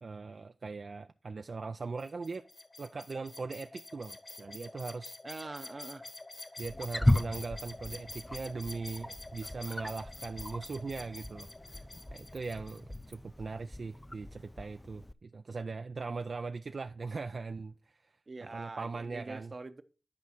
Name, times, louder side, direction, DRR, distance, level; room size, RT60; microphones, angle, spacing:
voice 1, 0.0-2.4 2.8-5.1 6.6-11.8 12.1-18.2 18.5-19.5, right 4 dB, 65° right, 0.3 m, -40 dB
sound 1, 2.0-13.0, left 2 dB, 45° left, 1.4 m, -48 dB
voice 2, 5.2-6.1 18.3-19.8, right 3 dB, 50° right, 0.7 m, -44 dB
Wild animals, 6.6-15.1, left 1 dB, 15° left, 0.4 m, -36 dB
10.5 x 4.8 x 4.3 m
cardioid pair, 50°, 0 cm